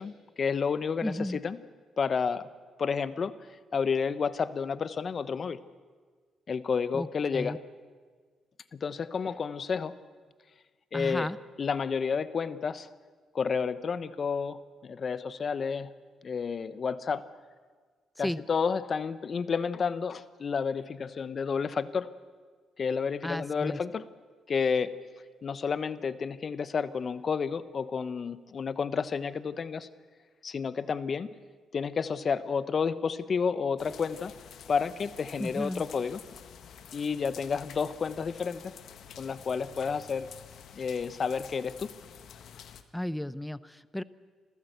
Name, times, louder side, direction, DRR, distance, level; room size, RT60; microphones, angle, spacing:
voice 1, 0.0-1.6 2.0-2.5 2.8-3.3 3.7-5.6 6.5-7.6 8.7-9.9 10.9-11.3 11.6-12.9 13.3-15.9 16.2-17.2 18.2-22.1 22.8-24.0 24.5-24.9 25.4-29.9 30.4-31.3 31.7-34.3 34.7-36.2 36.9-38.7 39.2-40.3 40.8-41.9, left 6 dB, 45° left, 15 dB, 1.0 m, -30 dB
voice 2, 1.0-1.4 6.9-7.1 7.3-7.6 10.9-11.4 18.2-18.4 23.2-23.8 35.4-35.8 42.9-44.0, left 1 dB, 5° left, 16 dB, 0.7 m, -33 dB
sound 1, 33.8-42.8, left 8 dB, 70° left, 1.4 m, -49 dB
27.0 x 14.5 x 8.1 m, 1.5 s
cardioid pair, 90°, 0 cm